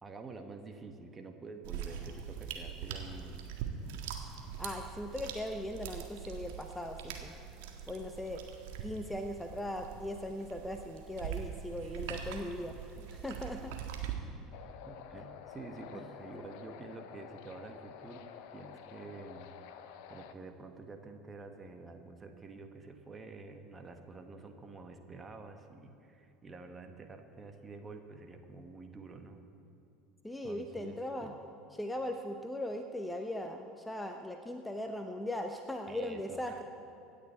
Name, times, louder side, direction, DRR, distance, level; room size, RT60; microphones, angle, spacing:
voice 1, 0.0-3.4 14.9-19.5 20.1-29.4 30.4-31.3 35.9-36.6, right 3 dB, 20° right, 5 dB, 1.6 m, -48 dB
sound 1, 1.6-14.1, right 8 dB, 60° right, 1.6 m, -43 dB
voice 2, 4.6-7.4 7.9-8.4 8.8-13.7 30.2-31.3 31.7-36.6, left 1 dB, 5° left, 5 dB, 0.9 m, -39 dB
sound 2, 14.5-20.3, left 9 dB, 55° left, 0.9 m, -50 dB
25.5 x 10.0 x 4.5 m, 2.9 s
figure-of-eight pair, 70°, 0 cm